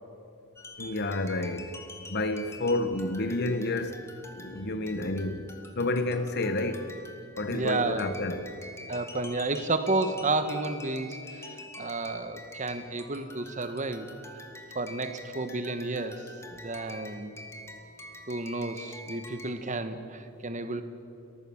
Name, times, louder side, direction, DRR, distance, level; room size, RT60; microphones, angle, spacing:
sound 1, 0.6-19.7, left 1 dB, 10° left, 1.7 m, -46 dB
voice 1, 0.8-1.8 2.1-5.5 5.7-6.9 7.4-8.5, left 2 dB, 50° left, 1.3 m, -30 dB
voice 2, 7.5-8.0 8.9-14.1 14.7-17.3 18.3-20.8, right 2 dB, 35° right, 1.2 m, -31 dB
30.0 x 14.5 x 7.2 m
head